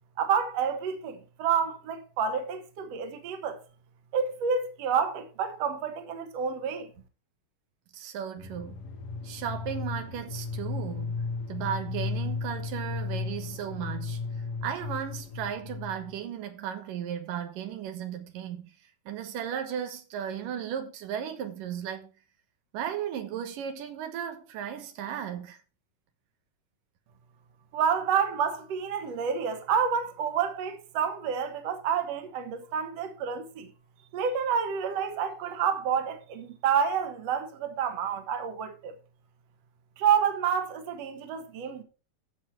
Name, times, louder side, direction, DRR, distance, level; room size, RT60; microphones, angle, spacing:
voice 1, 0.2-3.6 4.1-6.9 27.7-33.7 34.1-39.0 40.0-41.8, right 7 dB, 60° right, 2.2 m, -29 dB
voice 2, 7.9-8.8 9.2-14.2 14.6-18.7 19.1-22.1 22.7-25.6, right 9 dB, 85° right, 2.9 m, -35 dB
sound 1, 8.4-16.2, left 4 dB, 65° left, 2.2 m, -35 dB
14.5 x 5.5 x 4.5 m
omnidirectional pair, 3.7 m